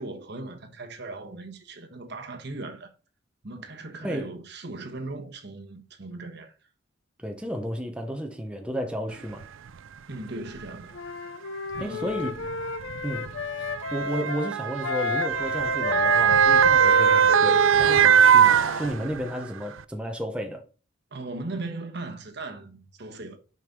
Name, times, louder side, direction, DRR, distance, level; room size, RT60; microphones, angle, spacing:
voice 1, 0.0-2.9 3.4-6.5 10.1-11.0 11.8-12.5 21.1-23.4, right 2 dB, 55° right, 1.4 m, -38 dB
voice 2, 7.2-9.4 11.8-12.4 13.0-13.3 13.9-20.6, equal, 5° right, 0.9 m, -32 dB
Motor vehicle (road) / Siren, 9.4-9.5 10.5-10.7 11.8-19.4 19.8-19.9, right 8 dB, 80° right, 0.5 m, -21 dB
Wind instrument woodwind instrument, 10.9-18.9, left 4 dB, 65° left, 0.5 m, -32 dB
6.4 x 5.3 x 5.3 m
head